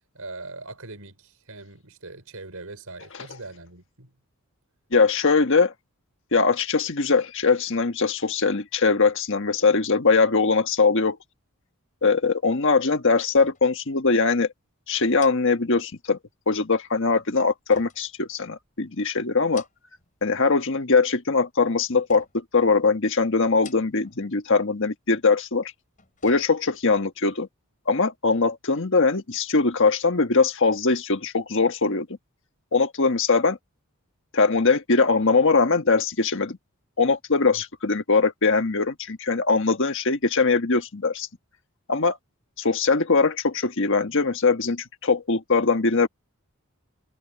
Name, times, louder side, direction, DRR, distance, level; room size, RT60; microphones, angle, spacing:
voice 1, 0.1-4.1 37.5-37.6, right 3 dB, 75° right, 5.0 m, -41 dB
voice 2, 4.9-5.7 6.3-11.2 12.0-14.5 14.9-16.2 16.5-19.6 20.2-25.7 26.2-27.5 27.9-32.1 32.7-33.6 34.3-36.6 37.0-41.3 41.9-42.2 42.6-46.1, left 4 dB, 60° left, 1.5 m, -21 dB
sound 1, 13.3-13.8 14.1-14.3 15.1-16.2 17.7-18.8 19.3-20.1 20.4-21.0 22.1-22.6 23.5-24.2 24.5-24.6 25.7-26.9 27.3-27.4, left 6 dB, 35° left, 6.0 m, -49 dB
head